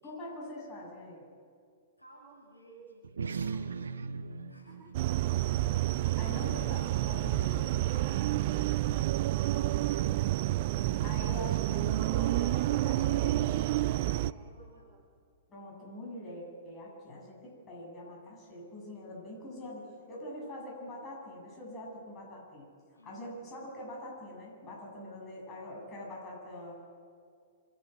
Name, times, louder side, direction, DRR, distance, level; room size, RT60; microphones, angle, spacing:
voice 1, 0.0-1.2 6.2-7.7 11.0-13.5 15.5-22.7 23.0-26.7, left 1 dB, 20° left, -3 dB, 7.8 m, -44 dB
voice 2, 2.0-3.7 4.5-5.1 6.0-6.5 7.3-10.4 14.0-15.1 22.9-23.2, right 2 dB, 85° left, 0 dB, 7.2 m, -56 dB
sound 1, 3.0-7.8, right 5 dB, 65° right, 0.9 m, -41 dB
sound 2, 4.9-14.3, right 15 dB, 40° right, 0.4 m, -29 dB
27.0 x 11.0 x 9.3 m, 2.2 s
figure-of-eight pair, 110°, 0 cm